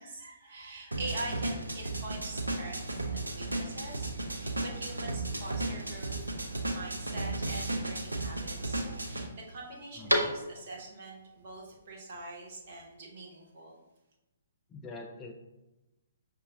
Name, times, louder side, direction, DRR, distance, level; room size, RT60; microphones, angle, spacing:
voice 1, 0.0-6.3 6.7-13.7, right 2 dB, 45° right, -2 dB, 0.9 m, -44 dB
sound 1, 0.9-9.3, right 2 dB, 75° right, 0.5 m, -35 dB
sound 2, 2.4-10.9, equal, 85° left, 0.6 m, -39 dB
voice 2, 10.0-10.3 14.7-15.3, left 3 dB, 15° left, 1 dB, 0.4 m, -44 dB
5.3 x 2.6 x 2.7 m, 1.0 s
figure-of-eight pair, 125°, 0 cm